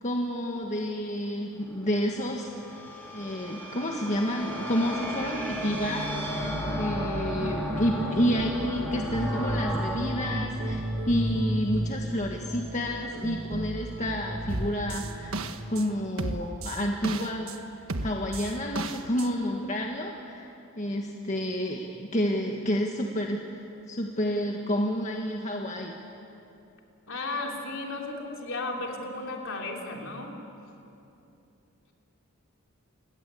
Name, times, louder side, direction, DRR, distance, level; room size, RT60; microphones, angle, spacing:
voice 1, 0.0-2.5 3.1-15.4 15.7-17.6 18.0-20.5 20.7-25.9, equal, 35° left, 1 dB, 1.6 m, -30 dB
sound 1, 1.6-12.0, equal, 10° left, 4.5 m, -35 dB
sound 2, 6.4-16.0, right 1 dB, 50° right, 2.1 m, -34 dB
sound 3, 14.5-15.8 16.2-17.6 17.9-19.3, right 2 dB, 65° right, 1.3 m, -33 dB
voice 2, 27.1-30.4, left 2 dB, 60° left, 1 dB, 3.6 m, -34 dB
29.0 x 20.0 x 8.5 m, 2.8 s
head